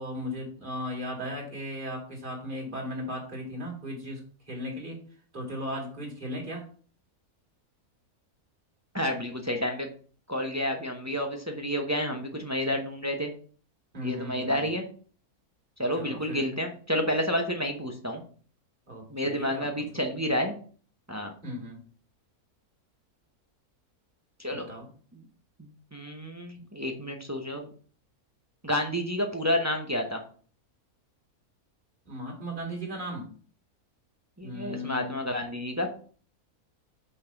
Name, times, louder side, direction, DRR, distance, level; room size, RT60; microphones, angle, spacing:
voice 1, 0.0-5.0 5.3-6.6 13.9-14.7 16.0-16.4 18.9-19.7 21.4-21.8 24.5-24.9 32.1-33.3 34.4-35.2, equal, 35° right, 0 dB, 2.2 m, -36 dB
voice 2, 8.9-9.9 10.3-13.3 14.0-14.8 15.8-18.2 19.1-20.5 21.1-21.3 24.4-24.7 25.6-27.7 28.6-30.2 34.4-35.9, left 1 dB, 15° right, 3 dB, 0.6 m, -30 dB
5.5 x 4.2 x 5.8 m, 0.43 s
omnidirectional pair, 1.6 m